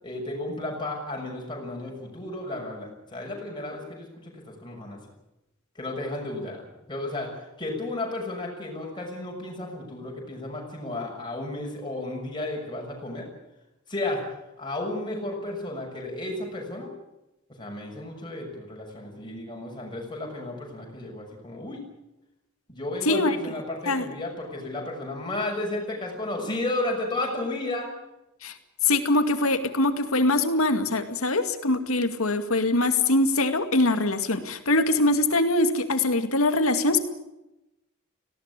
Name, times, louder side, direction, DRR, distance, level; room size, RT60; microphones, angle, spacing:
voice 1, 0.0-5.0 5.7-7.3 7.6-13.3 13.9-14.2 14.6-16.9 17.6-21.8 22.7-27.9, left 2 dB, 20° left, 0 dB, 6.6 m, -33 dB
voice 2, 23.1-23.4 23.9-24.1 28.4-28.5 28.8-37.0, left 2 dB, 85° left, 8 dB, 2.2 m, -23 dB
19.0 x 17.0 x 10.0 m, 0.95 s
head